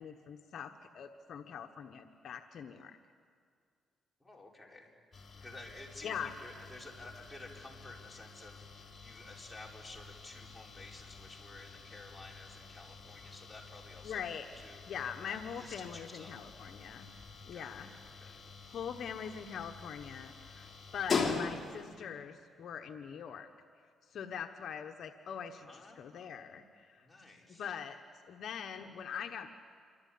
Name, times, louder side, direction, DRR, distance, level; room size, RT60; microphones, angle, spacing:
voice 1, 0.0-3.0 6.0-6.3 14.0-17.1 17.4-17.9 18.6-20.7 20.9-23.5 24.1-27.1 27.6-28.0 28.3-29.5, left 8 dB, 65° left, 5 dB, 1.2 m, -42 dB
voice 2, 4.2-4.9 5.4-16.4 17.5-18.4 25.6-26.3 27.0-27.6, left 2 dB, 10° left, -1 dB, 4.6 m, -52 dB
sound 1, 5.1-22.0, left 4 dB, 35° left, 3.0 m, -43 dB
27.5 x 25.0 x 8.6 m, 2.1 s
cardioid pair, 110°, 0 cm